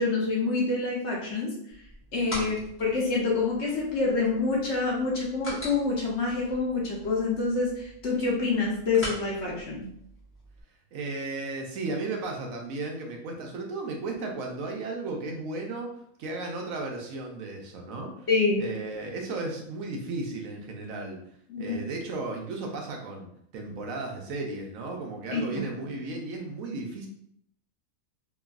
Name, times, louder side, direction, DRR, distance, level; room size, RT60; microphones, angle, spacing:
voice 1, 0.0-1.5 2.1-9.9 18.3-18.6 21.5-21.8 25.3-25.4, left 3 dB, 55° left, -3 dB, 1.0 m, -27 dB
sound 1, 1.7-10.6, equal, 10° left, 0.7 m, -43 dB
voice 2, 10.9-15.9 16.2-18.3 18.6-21.2 21.6-27.1, right 3 dB, 75° right, 1 dB, 1.0 m, -35 dB
3.0 x 2.6 x 2.4 m, 0.69 s
omnidirectional pair, 1.5 m